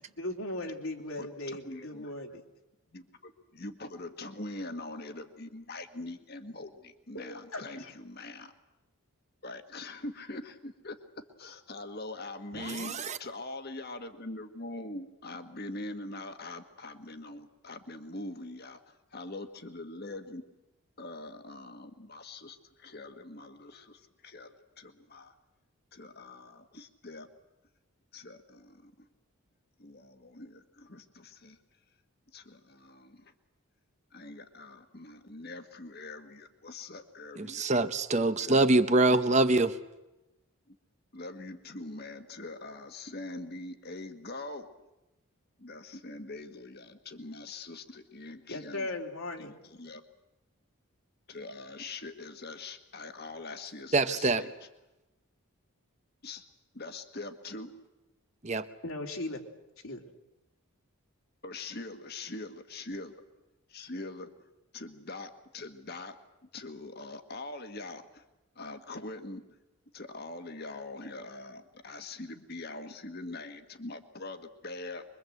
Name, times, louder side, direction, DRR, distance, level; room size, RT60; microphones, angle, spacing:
voice 1, 0.2-2.4 7.1-7.2 7.5-7.9 48.5-49.5 58.8-59.4 59.8-60.0, left 1 dB, 70° left, 2 dB, 3.0 m, -37 dB
voice 2, 1.6-2.1 2.9-8.5 9.4-11.0 11.4-20.4 21.0-25.3 25.9-27.3 28.1-29.1 29.8-31.6 32.3-33.3 34.1-37.6 38.4-38.6 40.7-40.8 41.1-44.7 45.6-48.9 49.4-50.0 51.3-54.5 56.2-56.4 56.7-57.8 61.4-63.1 63.7-64.3 64.7-66.2 66.4-68.2 68.6-69.4 69.9-75.0, left 2 dB, 45° left, 7 dB, 1.7 m, -43 dB
voice 3, 12.5-13.2 37.4-39.8 53.9-54.4 58.4-58.7, right 2 dB, 30° right, 10 dB, 0.9 m, -25 dB
24.5 x 23.0 x 7.9 m, 0.99 s
head